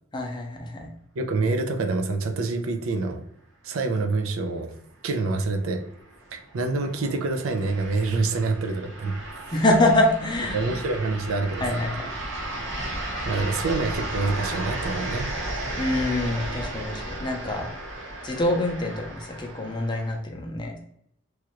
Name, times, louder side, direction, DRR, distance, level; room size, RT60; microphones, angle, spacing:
voice 1, 0.1-0.9 9.5-10.6 11.6-12.1 15.8-17.7 18.2-20.8, left 1 dB, 20° left, 1 dB, 0.5 m, -25 dB
voice 2, 1.2-3.3 3.6-4.8 5.0-5.8 6.3-9.4 10.5-11.8 13.3-15.3, right 3 dB, 85° right, 5 dB, 0.5 m, -26 dB
sound 1, 5.4-20.2, right 1 dB, 70° right, 0.9 m, -34 dB
3.1 x 2.4 x 3.0 m, 0.73 s
head